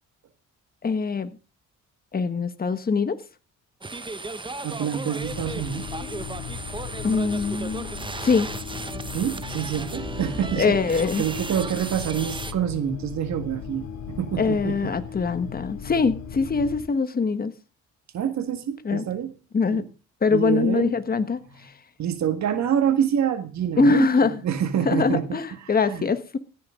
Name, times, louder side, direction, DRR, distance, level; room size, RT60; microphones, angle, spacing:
voice 1, 0.8-1.3 2.1-3.2 7.0-7.9 8.2-8.5 10.6-11.2 14.4-17.5 18.8-19.1 19.5-19.8 20.2-21.7 23.8-24.4 24.8-26.4, left 4 dB, 30° left, 11 dB, 1.3 m, -23 dB
sound 1, 3.8-12.5, right 3 dB, 15° right, 1.1 m, -35 dB
voice 2, 4.6-5.9 9.1-14.9 18.1-19.3 19.7-19.8 20.3-21.0 22.0-25.4 25.9-26.1, right 9 dB, 65° right, 9 dB, 1.8 m, -27 dB
sound 2, 5.2-16.8, left 7 dB, 70° left, 2.7 m, -37 dB
16.0 x 9.7 x 3.8 m, 0.32 s
cardioid pair, 90°, 30 cm